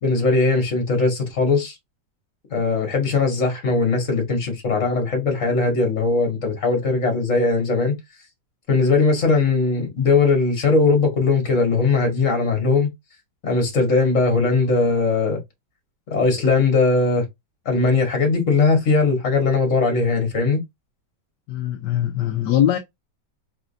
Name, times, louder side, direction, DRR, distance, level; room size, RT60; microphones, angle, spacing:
voice 1, 0.0-1.7 2.5-8.0 8.7-12.9 13.4-15.4 16.1-17.3 17.7-20.6, left 3 dB, 45° left, 2.0 m, -19 dB
voice 2, 21.5-22.8, left 11 dB, 75° left, 1.2 m, -21 dB
4.2 x 3.7 x 2.4 m
omnidirectional pair, 1.9 m